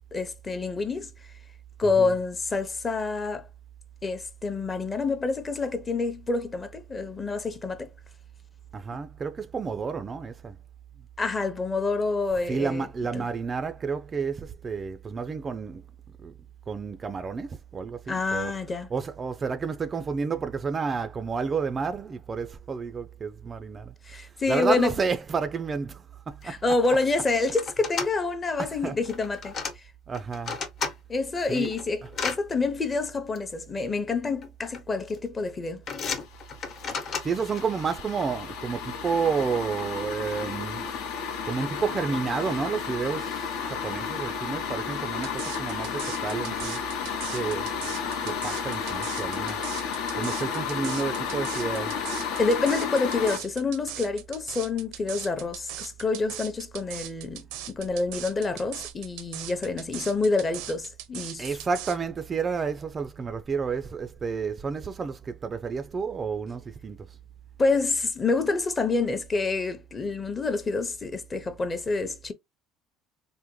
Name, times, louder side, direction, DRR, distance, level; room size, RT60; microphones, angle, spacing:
voice 1, 0.1-1.1 1.8-3.4 4.0-7.9 11.2-12.9 13.1-13.3 18.1-18.9 24.1-24.9 26.4-29.5 31.1-35.8 52.4-61.5 67.6-72.3, left 3 dB, 25° left, 0.6 m, -27 dB
voice 2, 1.8-2.1 8.7-10.6 12.5-15.8 16.2-16.3 16.7-18.5 18.9-23.9 24.2-26.6 28.6-29.0 30.1-30.6 31.5-31.7 37.2-41.0 41.5-46.8 47.3-48.0 48.2-49.6 50.2-52.0 61.4-67.2, right 5 dB, 30° right, 0.3 m, -30 dB
sound 1, 26.4-26.5 26.7-27.1 27.5-28.1 29.0-29.7 30.1-30.9 31.4-32.4 33.4-33.5 34.4-34.8 35.1-35.4 35.9-37.6, left 5 dB, 45° left, 0.9 m, -33 dB
sound 2, 36.2-53.4, left 7 dB, 80° left, 0.8 m, -32 dB
sound 3, 45.2-62.0, right 12 dB, 80° right, 0.5 m, -39 dB
3.4 x 2.1 x 3.0 m
supercardioid pair, 110°, 0 cm